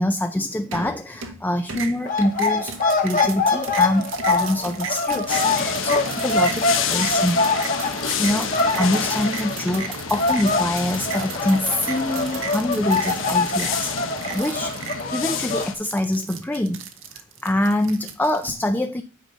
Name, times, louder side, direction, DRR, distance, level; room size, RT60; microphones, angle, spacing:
voice 1, 0.0-7.6 8.2-8.5 8.8-14.8 15.1-16.8 17.4-19.0, left 1 dB, 10° left, 7 dB, 0.5 m, -25 dB
sound 1, 0.7-1.4 1.7-18.5, right 6 dB, 85° right, 1.2 m, -35 dB
sound 2, 2.0-9.9 10.2-15.7, left 3 dB, 45° left, 1.6 m, -24 dB
sound 3, 5.3-15.7, left 6 dB, 80° left, 1.0 m, -29 dB
9.2 x 5.0 x 3.9 m, 0.35 s
head